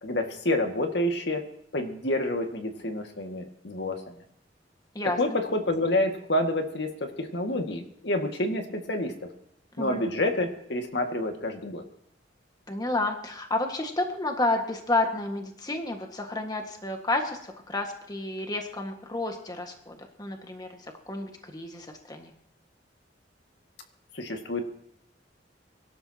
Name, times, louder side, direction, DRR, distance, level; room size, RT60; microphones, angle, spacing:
voice 1, 0.0-1.4 1.7-4.1 5.2-9.1 9.8-11.8 24.1-24.6, left 1 dB, 65° left, 4 dB, 2.0 m, -28 dB
voice 2, 12.7-17.4 17.7-20.7 21.1-22.3, left 2 dB, 20° left, 3 dB, 1.7 m, -30 dB
24.5 x 12.5 x 2.9 m, 0.76 s
head